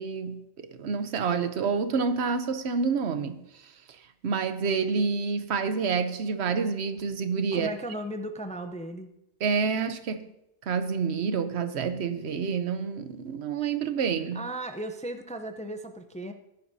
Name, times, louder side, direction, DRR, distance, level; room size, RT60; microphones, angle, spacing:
voice 1, 0.0-3.4 4.2-7.7 9.4-10.3 10.7-14.4, right 5 dB, 85° right, 10 dB, 1.1 m, -28 dB
voice 2, 7.5-9.1 14.3-16.3, right 1 dB, 10° left, 7 dB, 0.4 m, -36 dB
15.0 x 10.5 x 2.7 m, 0.87 s
omnidirectional pair, 1.1 m